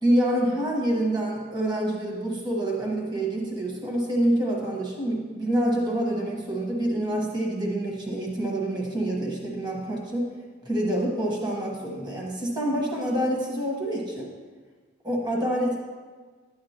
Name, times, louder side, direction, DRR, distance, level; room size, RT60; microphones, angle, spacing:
voice 1, 0.0-10.3 10.6-14.3 15.0-15.8, right 1 dB, 25° right, -2 dB, 1.3 m, -26 dB
11.0 x 8.6 x 2.9 m, 1.5 s
head